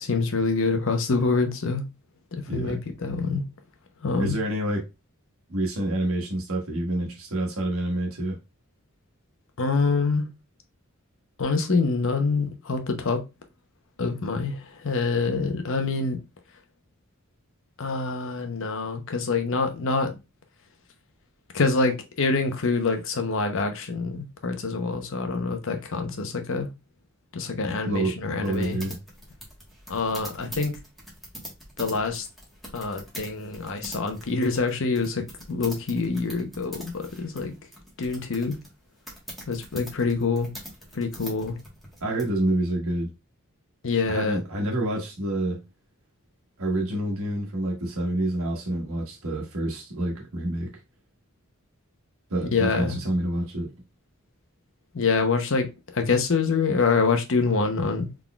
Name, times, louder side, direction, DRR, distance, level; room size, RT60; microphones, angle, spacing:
voice 1, 0.0-1.8 2.5-3.4 4.0-4.3 9.6-10.3 11.4-13.2 14.0-16.2 17.8-20.1 21.5-26.7 27.3-28.8 29.9-30.7 31.8-32.2 32.7-37.5 38.0-38.6 39.5-40.5 40.9-41.6 43.8-44.4 52.5-53.0 54.9-55.7 55.9-58.1, left 4 dB, 65° left, 0.8 m, -25 dB
voice 2, 4.2-4.8 5.5-8.4 27.8-29.0 42.0-43.1 44.0-45.6 46.6-50.7 52.3-53.7, right 1 dB, 80° right, 1.3 m, -28 dB
sound 1, 28.4-42.3, equal, ahead, 1.3 m, -43 dB
4.0 x 3.6 x 2.3 m
head